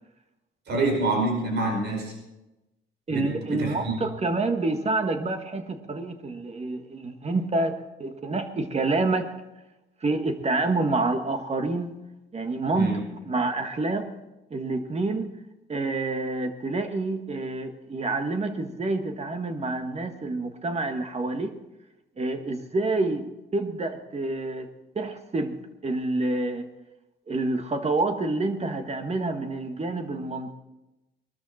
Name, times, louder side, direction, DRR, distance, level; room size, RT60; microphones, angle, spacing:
voice 1, 0.7-2.1 3.1-4.0 12.7-13.0, right 2 dB, 60° right, 1 dB, 5.2 m, -27 dB
voice 2, 3.1-9.3 10.0-11.9 12.3-14.1 14.5-15.3 15.7-21.6 22.2-24.7 24.9-25.6 25.8-26.7 27.3-30.5, right 2 dB, 30° right, 6 dB, 1.6 m, -28 dB
21.5 x 13.0 x 4.3 m, 0.99 s
cardioid pair, 90°, 20 cm